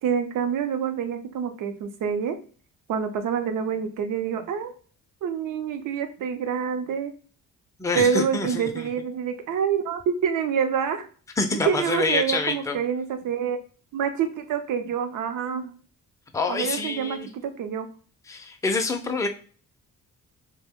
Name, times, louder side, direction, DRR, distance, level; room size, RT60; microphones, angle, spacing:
voice 1, 0.0-2.4 2.9-4.7 5.2-7.1 7.9-11.1 11.7-13.6 13.9-15.8 16.5-17.9, right 7 dB, 70° right, 7 dB, 0.6 m, -27 dB
voice 2, 7.8-8.9 11.4-12.8 16.3-17.3 18.3-19.3, left 3 dB, 10° left, 5 dB, 0.4 m, -26 dB
2.5 x 2.1 x 3.5 m, 0.40 s
cardioid pair, 80°, 33 cm